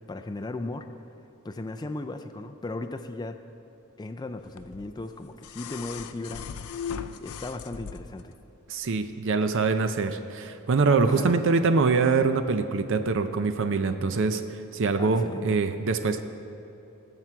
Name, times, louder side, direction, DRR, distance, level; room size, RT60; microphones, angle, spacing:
voice 1, 0.1-0.9 1.4-3.4 4.0-6.5 7.2-8.3 11.1-11.3 15.0-15.6, left 2 dB, 20° left, 7 dB, 0.4 m, -36 dB
sound 1, 4.6-8.3 9.6-9.7, left 6 dB, 80° left, 0.5 m, -38 dB
voice 2, 8.7-16.2, right 4 dB, 60° right, 9 dB, 0.6 m, -24 dB
19.0 x 7.6 x 4.6 m, 3.0 s
head